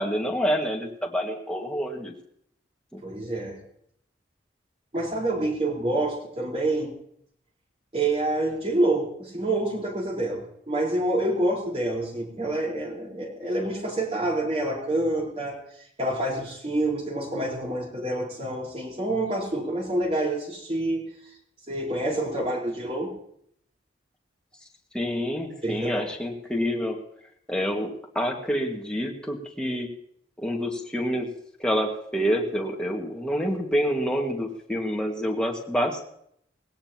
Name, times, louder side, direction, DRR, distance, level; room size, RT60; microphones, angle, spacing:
voice 1, 0.0-2.1 2.9-3.0 24.9-27.0 27.5-27.9 28.2-29.9 30.4-31.3 31.6-36.1, equal, 5° left, 0 dB, 1.8 m, -27 dB
voice 2, 3.0-3.6 4.9-6.9 7.9-15.6 16.0-21.0 21.7-23.1 25.6-26.1, right 1 dB, 35° right, -2 dB, 4.4 m, -27 dB
20.0 x 17.0 x 3.0 m, 0.70 s
head